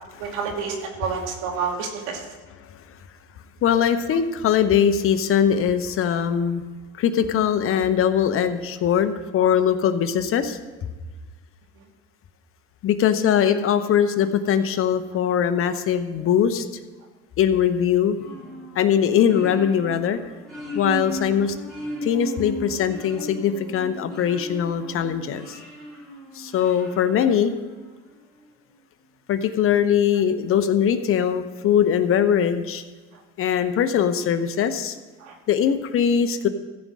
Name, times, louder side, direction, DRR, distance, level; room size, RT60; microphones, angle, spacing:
voice 1, 0.2-2.3 35.2-35.4, right 5 dB, 70° right, 2 dB, 2.6 m, -29 dB
voice 2, 3.6-6.6 7.0-10.6 12.8-16.6 17.4-18.2 18.7-20.2 20.7-21.5 22.0-25.6 26.3-27.5 29.3-32.8 33.4-34.9 35.5-36.5, left 8 dB, 40° left, 10 dB, 1.0 m, -21 dB
sound 1, 18.2-28.0, right 1 dB, ahead, 3.6 m, -36 dB
15.0 x 5.3 x 7.5 m, 1.3 s
supercardioid pair, 100°, 32 cm